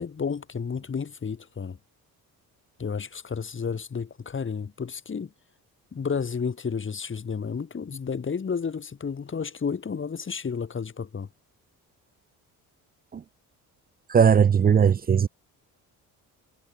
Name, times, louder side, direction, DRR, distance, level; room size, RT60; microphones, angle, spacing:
voice 1, 0.0-1.8 2.8-5.3 5.9-11.3, left 6 dB, 35° left, 2.7 m, -31 dB
voice 2, 14.1-15.3, right 7 dB, 25° right, 0.4 m, -18 dB
cardioid pair, 90°, 36 cm